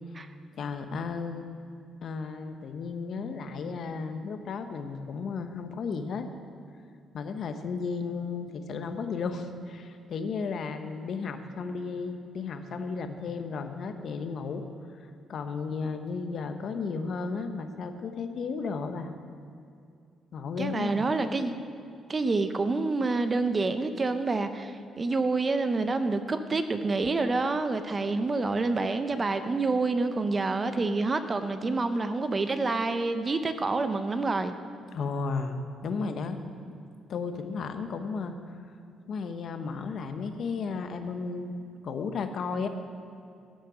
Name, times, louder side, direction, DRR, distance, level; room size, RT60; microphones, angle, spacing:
voice 1, 0.6-1.5 2.0-6.3 7.1-14.6 15.3-19.1 20.3-21.1 34.9-36.4 37.1-38.4 39.1-41.5 41.8-42.7, left 5 dB, 60° left, 8 dB, 0.8 m, -34 dB
voice 2, 20.6-21.5 22.1-34.5, right 3 dB, 30° right, 9 dB, 0.6 m, -27 dB
14.0 x 6.5 x 6.0 m, 2.4 s
cardioid pair, 115°, 0 cm